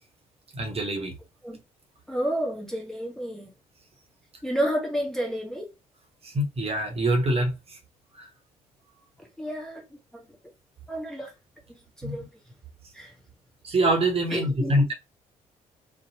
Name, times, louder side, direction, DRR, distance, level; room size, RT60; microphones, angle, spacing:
voice 1, 0.5-1.1 6.2-7.8 8.2-8.3 12.0-12.1 13.6-14.9, right 1 dB, 30° right, 0.9 m, -25 dB
voice 2, 2.1-3.5 4.4-5.7 9.4-9.8 10.1-10.2 10.9-11.3 12.0-12.3 12.9-13.1 14.3-14.7, equal, 5° left, 0.7 m, -30 dB
2.7 x 2.1 x 2.7 m
figure-of-eight pair, 45°, 19 cm